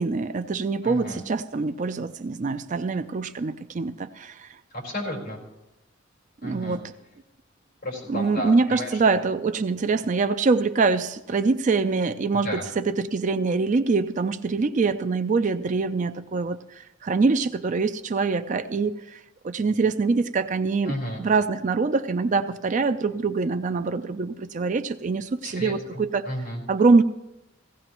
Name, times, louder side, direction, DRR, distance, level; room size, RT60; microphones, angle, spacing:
voice 1, 0.0-4.5 6.4-6.9 8.1-19.2 19.4-20.9 21.2-26.3 26.7-27.0, right 4 dB, 40° right, 10 dB, 0.4 m, -24 dB
voice 2, 0.8-1.2 4.7-5.4 6.4-6.8 7.8-9.2 12.3-12.6 20.8-21.2 25.4-26.6, equal, 50° left, -2 dB, 4.6 m, -33 dB
16.5 x 16.5 x 3.0 m, 0.91 s
head